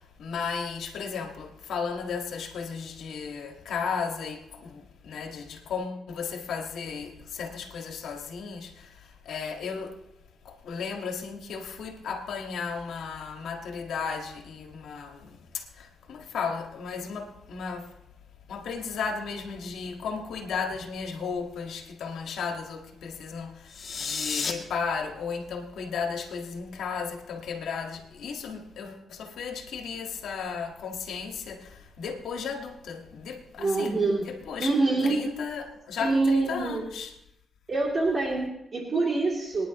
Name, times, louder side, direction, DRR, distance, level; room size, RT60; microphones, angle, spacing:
voice 1, 0.2-9.0 9.3-10.0 10.5-17.9 18.5-34.0 34.3-34.7 35.0-37.1, left 5 dB, 85° left, 1.7 m, -35 dB
sound 1, 23.7-24.5, left 5 dB, 55° left, 2.0 m, -31 dB
voice 2, 33.6-35.3 36.0-36.8 37.7-39.7, right 3 dB, 45° right, 2.9 m, -26 dB
25.0 x 10.0 x 3.0 m
cardioid pair, 75°, 0 cm